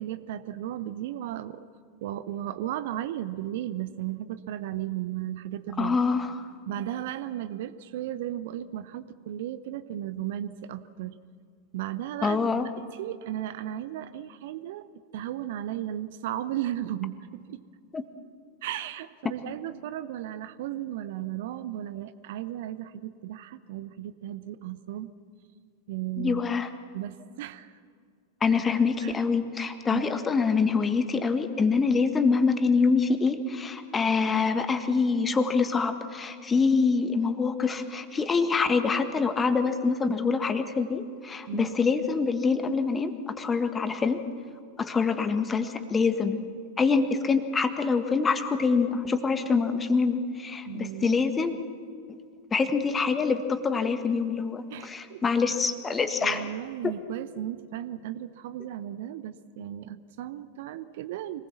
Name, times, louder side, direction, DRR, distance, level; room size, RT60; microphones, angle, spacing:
voice 1, 0.0-1.7 2.0-6.0 6.7-11.2 11.7-17.6 18.6-25.1 25.9-26.5 26.9-27.8 29.0-29.1 29.9-30.2 41.5-41.8 50.7-51.5 54.7-55.2 56.2-61.5, right 12 dB, 55° right, 14 dB, 0.8 m, -35 dB
voice 2, 5.8-6.3 12.2-12.7 17.9-18.0 26.2-26.7 28.4-44.2 44.8-46.4 46.8-51.6 52.5-56.4, left 4 dB, 15° left, 9 dB, 1.6 m, -25 dB
25.5 x 19.5 x 7.3 m, 2.2 s
figure-of-eight pair, 90°, 0 cm